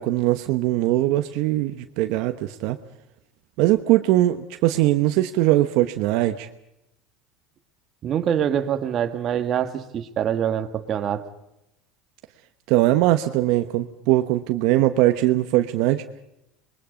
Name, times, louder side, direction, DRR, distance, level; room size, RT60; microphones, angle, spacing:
voice 1, 0.0-2.8 3.6-6.5 12.7-16.0, right 15 dB, 65° right, 8 dB, 1.1 m, -21 dB
voice 2, 8.0-11.3, right 9 dB, 40° right, 8 dB, 1.7 m, -25 dB
27.5 x 22.0 x 5.2 m, 0.85 s
supercardioid pair, 135°, 0 cm